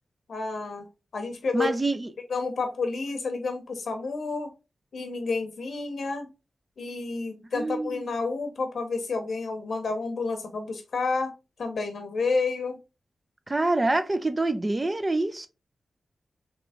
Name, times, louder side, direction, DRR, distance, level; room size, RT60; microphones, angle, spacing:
voice 1, 0.3-0.9 1.1-1.7 2.3-4.5 4.9-6.3 6.8-11.3 11.6-12.8, left 4 dB, 65° left, 0.7 m, -30 dB
voice 2, 1.5-2.1 7.5-8.1 13.5-15.5, right 2 dB, 20° right, 0.4 m, -26 dB
3.6 x 3.0 x 3.4 m
wide cardioid pair, 175°, 0 cm